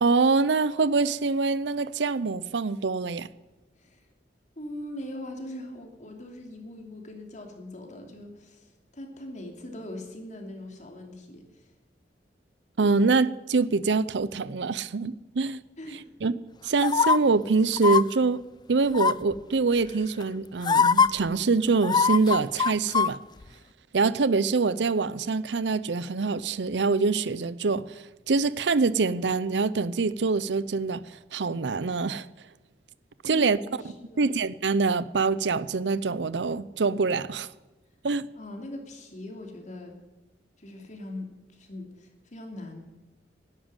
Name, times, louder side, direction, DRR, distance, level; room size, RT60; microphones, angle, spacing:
voice 1, 0.0-3.3 12.8-15.6 16.2-16.4 16.6-18.4 18.7-23.2 23.9-31.0 31.3-32.3 33.2-33.6 34.2-37.5 38.0-38.3, right 4 dB, 90° right, 0.6 m, -25 dB
voice 2, 4.6-11.7 14.8-14.9 15.8-16.1 33.2-34.3 38.4-40.0 40.6-42.8, left 1 dB, 45° left, 2.9 m, -41 dB
sound 1, 16.8-17.2 17.8-18.0 18.9-19.3 20.2-20.3 20.6-21.1 21.8-23.1 23.4-23.5, left 5 dB, 25° left, 0.4 m, -21 dB
12.0 x 11.0 x 9.0 m
head